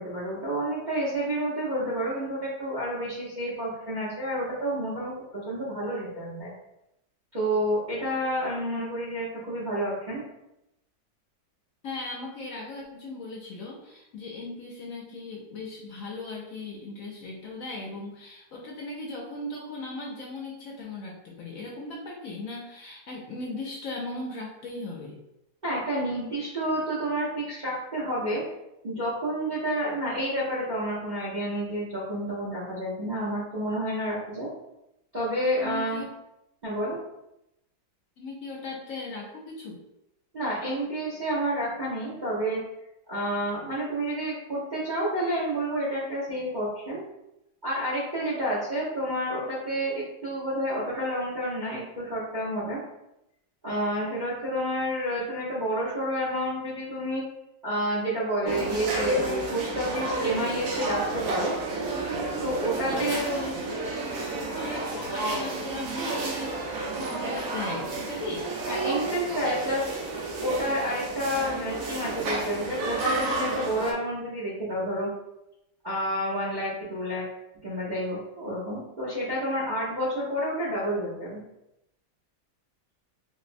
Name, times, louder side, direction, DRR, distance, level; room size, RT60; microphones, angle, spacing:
voice 1, 0.0-6.5 7.3-10.2 25.6-28.4 28.8-34.5 35.1-36.0 36.6-37.0 40.3-42.6 43.1-47.0 47.6-52.8 53.6-57.2 57.6-61.5 62.4-63.5 68.7-69.9 70.4-75.1 75.8-77.3 77.6-81.4, equal, 45° right, -7 dB, 0.6 m, -29 dB
voice 2, 11.8-25.2 35.6-36.1 38.2-39.8 62.8-63.3 64.6-68.5, left 2 dB, 65° left, -2 dB, 0.9 m, -38 dB
sound 1, 58.5-73.9, right 2 dB, 70° right, 1.0 m, -31 dB
4.0 x 2.0 x 2.5 m, 0.87 s
omnidirectional pair, 1.8 m